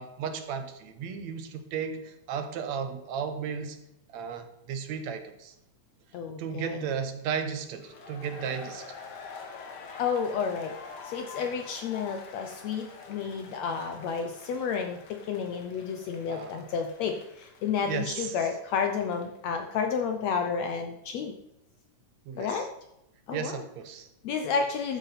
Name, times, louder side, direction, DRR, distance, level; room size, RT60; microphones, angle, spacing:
voice 1, 0.0-3.8 4.1-5.5 6.4-8.9 11.4-11.6 16.3-16.7 17.8-18.6 22.3-22.7 23.3-24.1, right 7 dB, 65° right, 8 dB, 2.1 m, -35 dB
voice 2, 6.1-6.8 10.0-10.7 11.0-21.3 22.4-22.7 23.3-23.6 24.2-25.0, left 6 dB, 70° left, 5 dB, 1.9 m, -31 dB
sound 1, 7.7-19.4, left 5 dB, 50° left, 1.3 m, -47 dB
13.5 x 9.5 x 4.1 m, 0.87 s
omnidirectional pair, 3.6 m